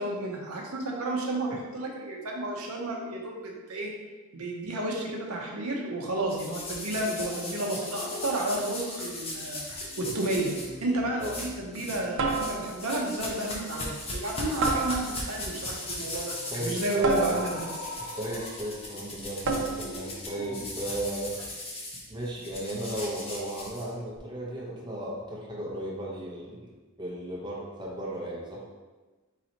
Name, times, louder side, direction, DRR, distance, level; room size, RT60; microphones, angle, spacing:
voice 1, 0.0-3.9 4.3-9.6 10.0-10.5 10.8-17.7, right 2 dB, 85° right, -1 dB, 0.8 m, -31 dB
sound 1, 6.3-10.7 11.2-12.0 12.3-24.2, left 1 dB, 25° left, 0.8 m, -38 dB
sound 2, 6.9-21.5, left 2 dB, 80° left, 1.1 m, -46 dB
sound 3, 10.4-10.7 12.2-13.0 14.6-15.4 17.0-18.0 19.4-20.0, right 3 dB, 65° right, 0.5 m, -30 dB
voice 2, 16.5-17.4 18.1-21.4 22.1-26.7 27.0-28.6, right 1 dB, 20° right, -4 dB, 0.8 m, -35 dB
4.0 x 2.8 x 4.3 m, 1.2 s
head